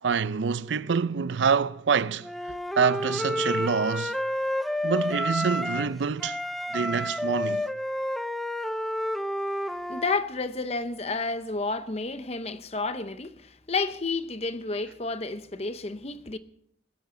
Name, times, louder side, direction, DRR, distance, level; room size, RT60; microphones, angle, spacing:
voice 1, 0.0-2.3 2.8-4.2 4.8-6.4 6.7-7.7, right 6 dB, 80° right, 0.5 m, -26 dB
Wind instrument woodwind instrument, 2.2-5.9 6.2-10.2, left 1 dB, ahead, 0.5 m, -30 dB
voice 2, 9.9-16.4, left 3 dB, 35° left, 0.8 m, -31 dB
19.5 x 15.5 x 3.8 m
head